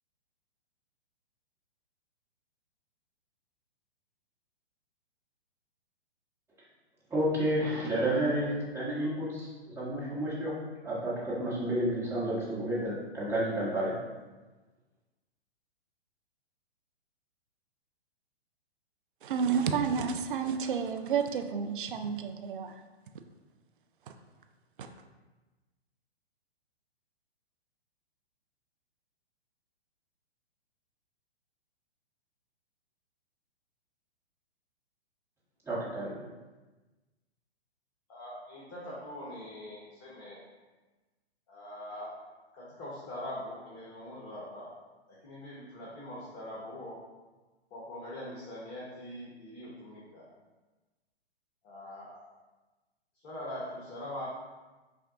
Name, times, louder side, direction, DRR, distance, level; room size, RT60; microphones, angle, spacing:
voice 1, 7.1-10.5 10.8-13.9 35.6-36.2, right 1 dB, 5° right, -9 dB, 1.2 m, -31 dB
voice 2, 19.2-22.7 24.8-24.9, right 6 dB, 50° right, 6 dB, 0.5 m, -30 dB
voice 3, 38.1-40.4 41.5-42.1 42.5-44.7 45.1-47.0 47.7-50.3 51.6-52.4 53.2-54.3, left 1 dB, 30° left, -6 dB, 1.0 m, -42 dB
6.0 x 2.3 x 3.6 m, 1.2 s
figure-of-eight pair, 120°, 33 cm